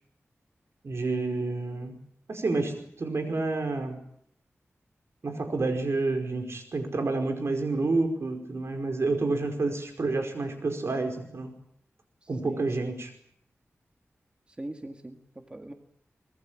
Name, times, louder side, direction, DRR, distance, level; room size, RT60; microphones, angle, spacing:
voice 1, 0.8-2.0 2.3-4.0 5.2-11.5 12.3-13.1, right 3 dB, 65° right, 5 dB, 5.0 m, -29 dB
voice 2, 12.2-12.9 14.5-15.7, right 1 dB, 20° right, 6 dB, 1.9 m, -41 dB
24.0 x 20.5 x 8.7 m, 0.68 s
wide cardioid pair, 105°, 5 cm